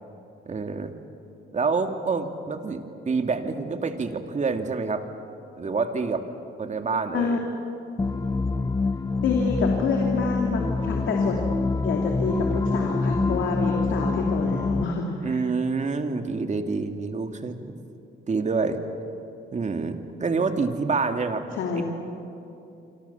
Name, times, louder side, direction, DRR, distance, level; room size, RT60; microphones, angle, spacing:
voice 1, 0.5-0.9 1.5-5.1 5.6-6.2 6.6-7.4 15.2-17.7 18.3-18.8 19.5-21.5 21.8-21.9, right 4 dB, 35° right, 6 dB, 2.2 m, -27 dB
sound 1, 8.0-14.8, left 3 dB, 15° left, 0.6 m, -25 dB
voice 2, 9.2-11.4 11.8-15.4 21.5-21.8, left 4 dB, 75° left, 0 dB, 3.0 m, -27 dB
26.5 x 26.0 x 7.1 m, 2.8 s
cardioid pair, 90°, 20 cm